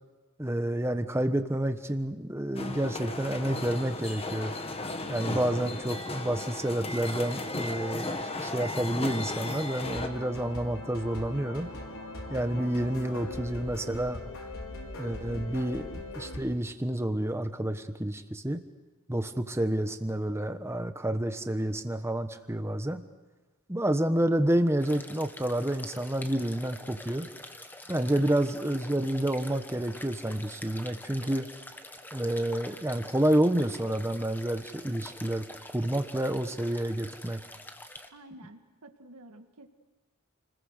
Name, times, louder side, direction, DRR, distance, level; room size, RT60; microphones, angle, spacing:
voice 1, 0.4-4.5 5.1-11.7 12.3-14.2 15.0-18.6 19.1-23.0 23.7-27.3 27.9-31.5 32.1-37.4, right 1 dB, 10° right, 8 dB, 1.2 m, -29 dB
sound 1, 2.6-10.1, left 2 dB, 25° left, 1.4 m, -35 dB
voice 2, 5.3-6.0 15.2-15.5 28.0-28.3 38.1-39.7, right 1 dB, 80° right, 6 dB, 2.0 m, -50 dB
sound 2, 9.8-16.4, left 1 dB, 65° left, 4.5 m, -40 dB
sound 3, 24.8-38.1, left 1 dB, 10° left, 1.3 m, -46 dB
29.5 x 20.5 x 6.6 m, 1.2 s
head